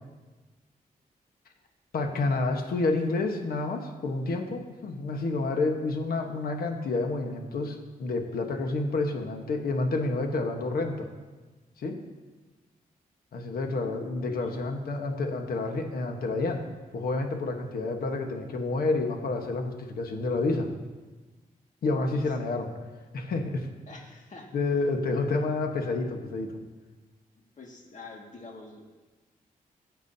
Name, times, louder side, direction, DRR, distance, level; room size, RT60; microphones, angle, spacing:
voice 1, 1.9-11.1 11.8-12.0 13.3-16.6 16.9-20.7 21.8-22.7 23.1-23.7 24.5-26.5, left 3 dB, 80° left, 4 dB, 1.2 m, -29 dB
voice 2, 14.2-14.6 22.1-22.2 23.9-24.5 27.6-28.8, left 3 dB, 55° left, 1 dB, 2.0 m, -46 dB
16.0 x 8.4 x 2.8 m, 1.3 s
cardioid pair, 70°, 15 cm